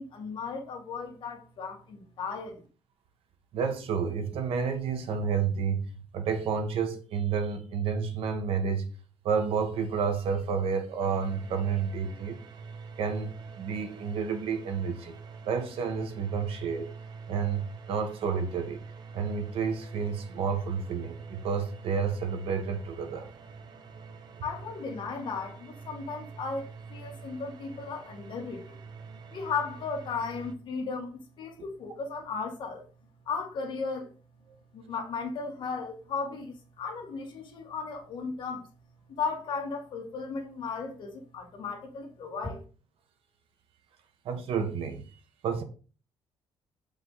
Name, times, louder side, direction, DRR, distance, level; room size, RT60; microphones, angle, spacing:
voice 1, 0.0-2.6 24.4-28.8 29.3-32.8 33.3-34.1 34.7-38.7 39.1-42.6, left 4 dB, 50° left, 2.2 m, -35 dB
voice 2, 3.5-5.9 6.1-8.9 9.2-12.4 13.0-15.2 15.4-16.9 17.3-18.8 19.1-23.3 44.2-45.0 45.4-45.6, right 6 dB, 65° right, 1.3 m, -30 dB
sound 1, 11.0-30.5, right 5 dB, 45° right, 0.9 m, -46 dB
7.0 x 5.3 x 4.0 m
cardioid pair, 170°, 10 cm